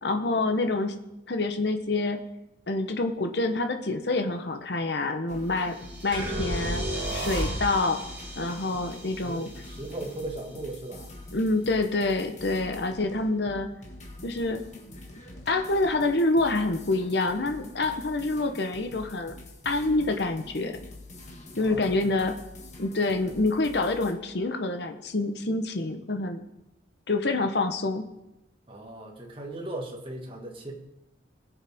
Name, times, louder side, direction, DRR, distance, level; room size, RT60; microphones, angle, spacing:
voice 1, 0.0-0.9 1.3-2.2 2.7-5.8 6.0-6.8 7.1-8.0 8.4-9.5 11.3-13.7 14.2-14.6 15.5-19.4 19.6-20.8 21.6-22.3 22.8-26.4 27.1-28.0, left 2 dB, 60° left, 6 dB, 0.9 m, -27 dB
sound 1, 5.3-24.1, left 1 dB, 40° left, 1.7 m, -45 dB
sound 2, 5.5-11.6, right 1 dB, 10° right, 2.6 m, -43 dB
sound 3, 6.1-8.0, equal, 50° right, 4.6 m, -30 dB
voice 2, 9.2-11.1 21.5-22.1 28.7-30.7, right 2 dB, 30° right, 0 dB, 1.8 m, -38 dB
20.0 x 7.2 x 3.5 m, 0.92 s
head